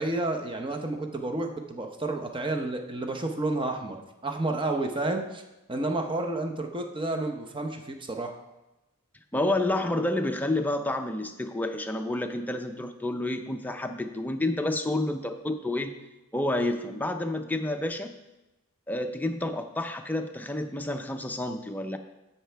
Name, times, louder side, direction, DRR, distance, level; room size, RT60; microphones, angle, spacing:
voice 1, 0.0-5.4 5.7-8.4, right 2 dB, 25° right, 4 dB, 0.8 m, -30 dB
voice 2, 9.3-15.9 16.3-18.1 18.9-22.0, left 1 dB, 10° left, 5 dB, 0.5 m, -29 dB
15.0 x 5.7 x 3.4 m, 0.99 s
head